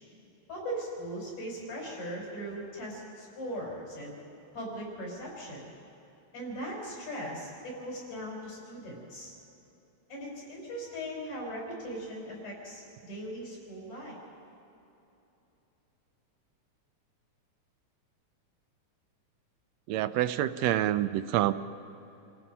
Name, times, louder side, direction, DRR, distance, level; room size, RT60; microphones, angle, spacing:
voice 1, 0.5-4.2 4.5-5.7 6.3-9.3 10.1-14.2, equal, 70° left, -2 dB, 6.7 m, -39 dB
voice 2, 19.9-21.5, right 13 dB, 75° right, 13 dB, 1.6 m, -27 dB
28.5 x 17.0 x 5.6 m, 3.0 s
omnidirectional pair, 3.3 m